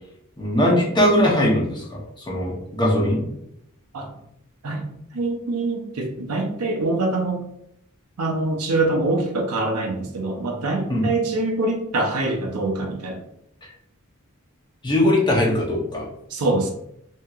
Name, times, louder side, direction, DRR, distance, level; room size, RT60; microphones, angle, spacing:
voice 1, 0.4-3.2 10.9-11.1 14.8-16.0, left 1 dB, 20° left, -3 dB, 0.7 m, -20 dB
voice 2, 5.1-7.4 8.2-13.2 16.3-16.7, right 2 dB, 90° right, 2 dB, 0.6 m, -24 dB
2.8 x 2.8 x 2.3 m, 0.76 s
head